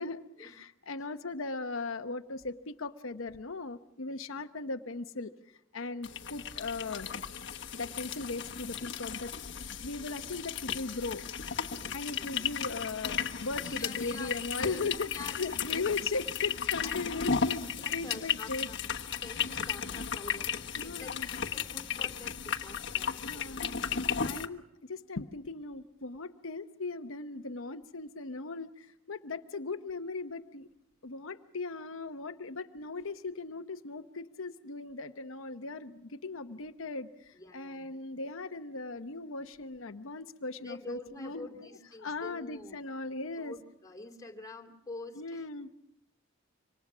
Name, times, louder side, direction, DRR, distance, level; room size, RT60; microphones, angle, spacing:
voice 1, 0.0-5.3 5.7-7.1 7.7-9.3 9.8-11.2 11.9-18.7 20.8-21.3 23.2-23.8 24.2-30.7 31.0-43.6 45.2-45.7, left 3 dB, 75° left, 8 dB, 0.9 m, -38 dB
sound 1, 6.0-24.5, left 7 dB, 55° left, 1.3 m, -35 dB
voice 2, 12.2-12.5 13.6-15.6 16.8-17.4 17.6-18.8 19.2-20.5 20.8-23.7 37.3-38.0 40.6-42.7 43.3-45.4, left 3 dB, 15° left, 3 dB, 2.6 m, -47 dB
27.0 x 25.5 x 6.1 m, 0.79 s
head